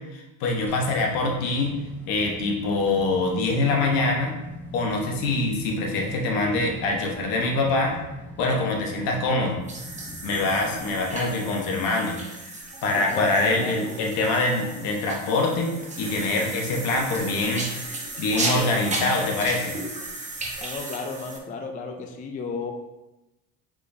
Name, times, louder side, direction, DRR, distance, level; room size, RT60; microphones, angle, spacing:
voice 1, 0.1-1.8 2.1-4.3 4.7-7.9 8.4-9.6 10.2-12.4 12.8-19.8, left 2 dB, 70° left, 1 dB, 1.2 m, -24 dB
sound 1, 0.7-11.2, equal, 5° left, 0.8 m, -42 dB
sound 2, 9.7-21.4, right 2 dB, 20° right, 1.0 m, -34 dB
voice 2, 12.9-14.0 20.6-22.7, left 4 dB, 25° left, 4 dB, 0.4 m, -34 dB
4.9 x 3.7 x 2.7 m, 0.99 s
supercardioid pair, 105°, 36 cm